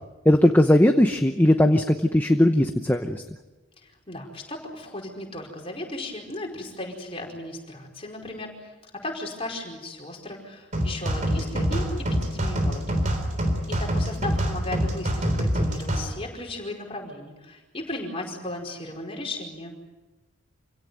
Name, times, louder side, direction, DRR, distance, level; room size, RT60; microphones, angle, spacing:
voice 1, 0.2-3.2, left 1 dB, 10° left, 6 dB, 0.8 m, -19 dB
voice 2, 3.8-8.7 9.0-13.0 13.7-19.8, left 2 dB, 25° left, 0 dB, 4.9 m, -36 dB
sound 1, 10.7-16.1, equal, 35° right, 3.5 m, -25 dB
27.0 x 17.0 x 9.3 m, 1.1 s
head